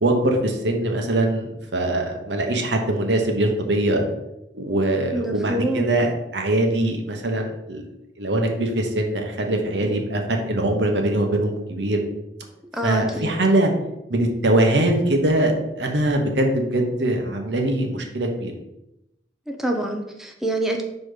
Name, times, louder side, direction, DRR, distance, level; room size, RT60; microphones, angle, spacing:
voice 1, 0.0-4.0 4.5-7.8 8.2-12.0 12.8-13.7 14.1-18.5, right 1 dB, 85° right, 3 dB, 1.1 m, -22 dB
voice 2, 5.1-6.0 12.8-13.3 19.5-20.8, right 1 dB, ahead, 2 dB, 0.6 m, -26 dB
5.4 x 4.2 x 5.0 m, 0.89 s
head